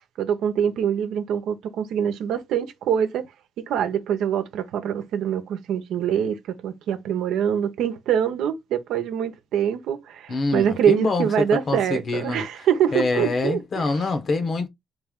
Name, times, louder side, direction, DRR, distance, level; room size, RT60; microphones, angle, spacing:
voice 1, 0.2-3.3 3.7-14.1, right 9 dB, 85° right, 0.8 m, -24 dB
voice 2, 10.3-12.4 12.9-14.7, left 3 dB, 50° left, 1.1 m, -25 dB
3.3 x 3.2 x 3.6 m
cardioid pair, 90°, 0 cm